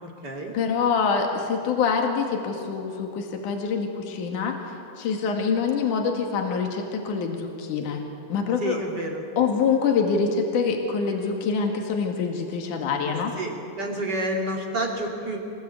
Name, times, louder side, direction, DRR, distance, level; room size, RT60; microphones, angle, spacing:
voice 1, 0.0-0.5 8.6-9.2 13.4-15.4, right 1 dB, 30° right, 0 dB, 3.1 m, -29 dB
voice 2, 0.5-8.0 8.3-8.8 9.4-13.4, left 5 dB, 70° left, 2 dB, 3.4 m, -25 dB
25.5 x 20.0 x 8.5 m, 2.7 s
omnidirectional pair, 3.8 m